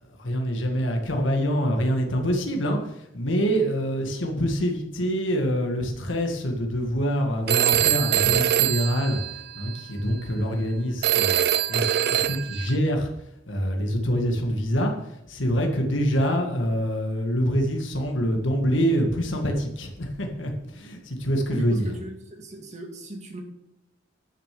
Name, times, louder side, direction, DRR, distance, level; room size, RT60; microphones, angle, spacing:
voice 1, 0.2-9.2 9.6-13.1 13.5-14.9 15.3-21.9, equal, 85° left, 2 dB, 1.9 m, -25 dB
Telephone, 7.5-9.8 11.0-12.8, right 11 dB, 55° right, 0.4 m, -23 dB
voice 2, 21.5-23.4, right 1 dB, 40° right, 3 dB, 2.2 m, -38 dB
11.0 x 6.7 x 6.8 m, 0.88 s
head